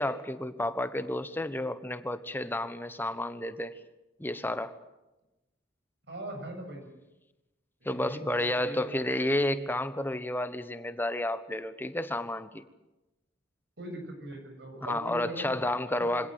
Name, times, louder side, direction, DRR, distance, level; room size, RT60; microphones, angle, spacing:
voice 1, 0.0-3.7 4.2-4.7 7.8-12.6 14.8-16.3, left 1 dB, 10° left, 11 dB, 1.2 m, -31 dB
voice 2, 6.1-6.8 7.8-9.4 13.8-15.6 16.0-16.3, right 1 dB, 65° right, 4 dB, 6.9 m, -41 dB
25.0 x 17.0 x 9.1 m, 1.0 s
head